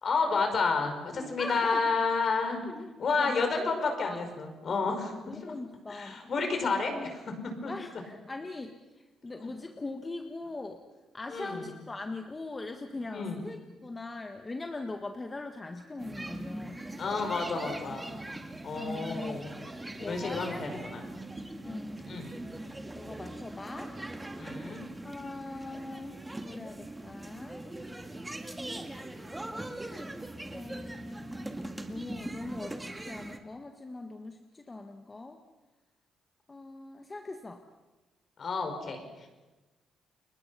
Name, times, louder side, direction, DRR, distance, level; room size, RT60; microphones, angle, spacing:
voice 1, 0.0-2.7 3.0-5.1 5.4-5.5 5.9-6.9 7.6-7.7 9.4-9.5 11.3-11.6 13.1-13.5 17.0-18.2 18.6-19.5 20.0-21.0 22.1-22.3 24.4-24.8 38.4-39.3, left 4 dB, 50° left, 5 dB, 5.4 m, -30 dB
voice 2, 1.1-1.8 2.7-2.9 3.2-4.2 5.3-6.2 6.5-7.2 7.7-10.8 11.1-16.9 18.7-19.5 20.0-20.8 21.1-21.3 21.6-22.0 22.9-24.0 25.0-27.7 30.5-31.5 31.9-35.4 36.5-37.6, left 2 dB, 25° left, 5 dB, 1.5 m, -41 dB
sound 1, 16.0-33.4, right 1 dB, 15° right, 2.1 m, -41 dB
30.0 x 22.0 x 5.7 m, 1.1 s
cardioid pair, 90°, 0 cm